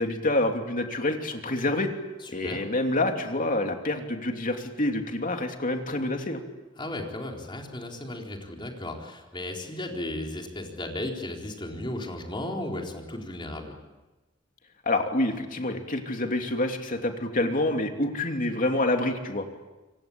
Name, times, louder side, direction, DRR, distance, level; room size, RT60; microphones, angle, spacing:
voice 1, 0.0-1.9 2.3-6.4 14.8-19.5, left 2 dB, 40° left, 4 dB, 2.9 m, -27 dB
voice 2, 2.2-2.6 6.8-13.8, left 1 dB, 25° left, 1 dB, 4.2 m, -35 dB
27.0 x 24.0 x 8.8 m, 1.1 s
head